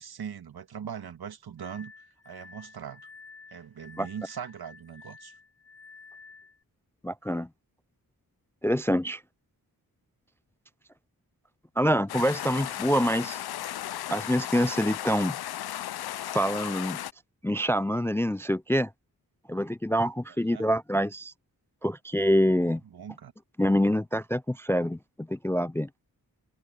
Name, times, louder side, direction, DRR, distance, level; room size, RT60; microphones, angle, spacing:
voice 1, 0.0-1.9 2.2-3.0 3.5-5.3 20.5-20.6 22.9-23.3, right 8 dB, 80° right, 1.7 m, -40 dB
Glass, 1.6-6.6, left 4 dB, 40° left, 1.4 m, -51 dB
voice 2, 7.0-7.5 8.6-9.2 11.8-13.4 14.1-15.4 16.3-17.0 17.4-18.9 19.5-21.3 21.8-22.8 23.6-25.0 25.3-25.9, equal, 5° left, 0.3 m, -26 dB
sound 1, 12.1-17.1, left 12 dB, 80° left, 0.6 m, -35 dB
cardioid pair, 50°, 37 cm